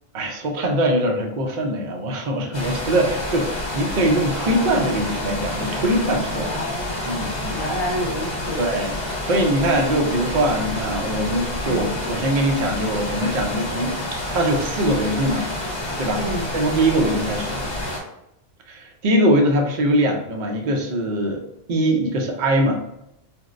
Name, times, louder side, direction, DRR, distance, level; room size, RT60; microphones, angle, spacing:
voice 1, 0.1-6.5 7.1-7.6 8.6-8.9 9.3-14.0 14.3-15.5 16.0-16.2 16.5-17.6 18.7-21.4 21.7-22.8, right 1 dB, 55° right, 2 dB, 0.6 m, -22 dB
sound 1, 2.5-18.0, left 1 dB, 65° left, 1.2 m, -28 dB
voice 2, 6.3-8.7 11.6-11.9 16.1-16.5, equal, 35° left, -4 dB, 0.8 m, -29 dB
4.4 x 2.0 x 2.4 m, 0.83 s
omnidirectional pair, 1.2 m